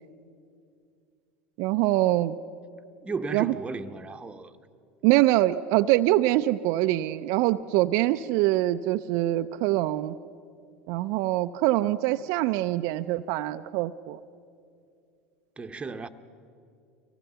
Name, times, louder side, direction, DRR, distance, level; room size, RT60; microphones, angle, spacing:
voice 1, 1.6-2.4 3.3-3.5 5.0-10.2 10.9-14.2, right 16 dB, 60° right, 0.5 m, -24 dB
voice 2, 3.0-4.5 15.6-16.1, right 4 dB, 20° right, 1.0 m, -34 dB
24.0 x 18.0 x 6.9 m
hypercardioid pair, 90°, 6 cm